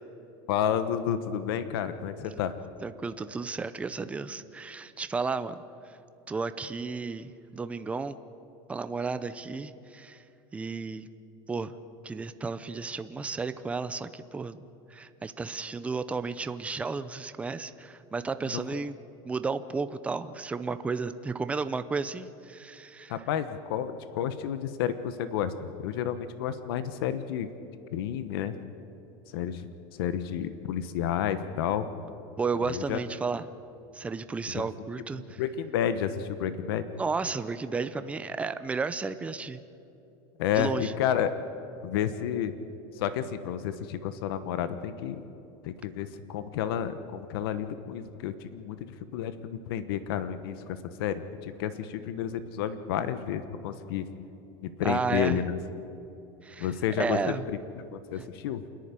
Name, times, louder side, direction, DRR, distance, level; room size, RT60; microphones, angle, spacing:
voice 1, 0.5-2.5 18.4-18.8 23.1-27.5 27.9-28.6 29.3-29.7 30.0-31.9 32.7-33.0 34.5-34.7 35.1-36.8 40.4-41.3 41.8-42.5 42.9-45.2 45.6-54.1 54.6-55.5 56.6-58.6, left 9 dB, 80° left, 12 dB, 1.2 m, -31 dB
voice 2, 2.8-5.6 6.3-8.2 8.7-10.2 10.5-11.1 11.5-11.7 12.0-14.6 14.9-19.0 19.2-23.1 32.4-33.5 33.9-35.4 37.0-39.6 40.6-40.9 54.8-55.4 56.4-56.7 57.0-57.4 58.2-58.3, right 4 dB, 10° right, 12 dB, 0.6 m, -33 dB
27.5 x 10.5 x 9.7 m, 2.9 s
supercardioid pair, 155°, 12 cm